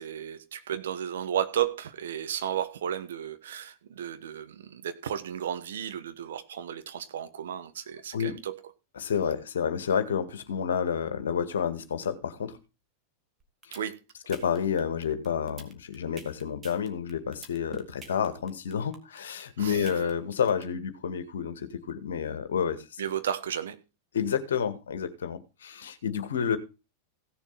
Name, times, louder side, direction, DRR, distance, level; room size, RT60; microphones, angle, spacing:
voice 1, 0.0-8.6 13.7-14.0 19.6-19.9 23.0-23.8, right 9 dB, 60° right, 1.3 m, -33 dB
voice 2, 9.0-12.6 13.7-13.8 14.3-23.0 24.1-26.6, left 7 dB, 65° left, 1.9 m, -30 dB
sound 1, 13.4-20.6, right 5 dB, 20° right, 2.5 m, -47 dB
16.0 x 7.1 x 4.1 m
figure-of-eight pair, 90°, 0 cm